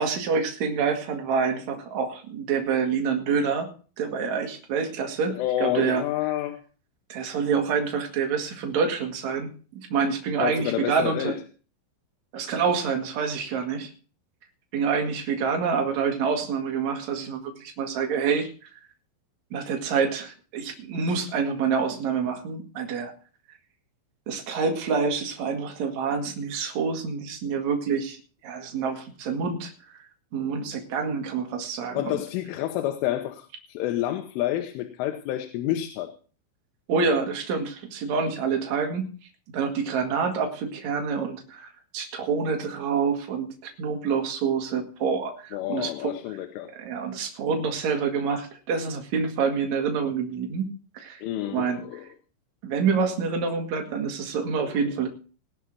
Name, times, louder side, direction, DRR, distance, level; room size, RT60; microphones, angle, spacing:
voice 1, 0.0-3.7 4.0-6.0 7.1-11.4 12.3-13.9 14.7-18.7 19.5-23.1 24.3-28.2 28.4-30.0 30.3-32.2 36.9-39.1 39.5-46.1 46.8-51.2 51.5-52.1 52.6-55.1, right 5 dB, 50° right, 4 dB, 2.5 m, -27 dB
voice 2, 5.4-6.6 10.4-11.4 12.4-12.5 31.9-36.2 45.5-46.7 51.2-52.1 54.6-54.7, left 13 dB, 80° left, 6 dB, 3.5 m, -29 dB
19.5 x 6.6 x 6.1 m, 0.38 s
omnidirectional pair, 5.7 m